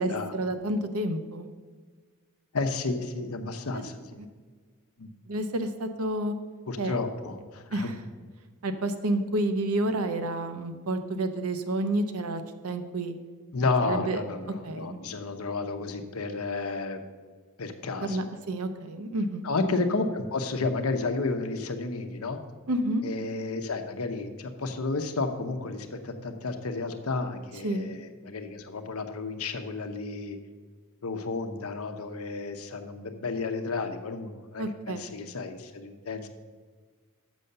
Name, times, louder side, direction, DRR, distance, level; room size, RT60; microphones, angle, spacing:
voice 1, 0.0-1.5 3.7-3.8 5.3-6.3 6.8-7.0 7.7-7.9 8.6-13.1 13.8-14.2 14.6-15.0 18.0-19.5 22.7-23.0 27.6-27.9 34.6-35.1, right 1 dB, 80° right, 8 dB, 0.8 m, -29 dB
voice 2, 2.5-4.2 5.0-5.1 6.7-7.9 13.5-17.0 17.6-18.3 19.4-22.4 23.0-30.4 31.0-36.3, left 3 dB, 75° left, 7 dB, 0.8 m, -32 dB
6.7 x 6.2 x 6.5 m, 1.5 s
head